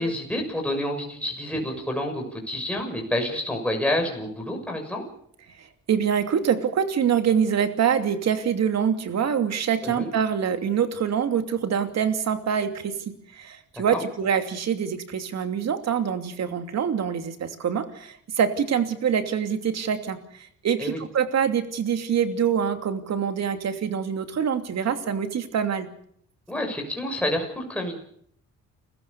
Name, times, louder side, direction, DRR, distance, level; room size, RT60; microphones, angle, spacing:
voice 1, 0.0-5.0 9.8-10.1 13.9-14.0 20.8-21.0 26.5-28.0, left 1 dB, 5° left, 2 dB, 6.5 m, -28 dB
voice 2, 5.6-12.9 13.3-25.9, right 7 dB, 60° right, 7 dB, 2.8 m, -25 dB
30.0 x 15.0 x 6.9 m, 0.67 s
cardioid pair, 90°, 30 cm